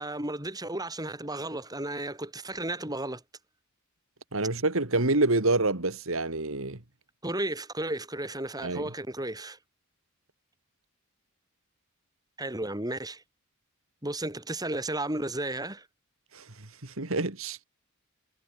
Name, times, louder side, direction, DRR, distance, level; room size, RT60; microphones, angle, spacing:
voice 1, 0.0-3.2 7.2-9.6 12.4-13.2 14.0-15.9, right 1 dB, 20° right, 7.6 m, -33 dB
voice 2, 4.3-6.8 8.6-8.9 16.3-16.5 16.8-17.6, right 2 dB, 70° right, 2.4 m, -27 dB
head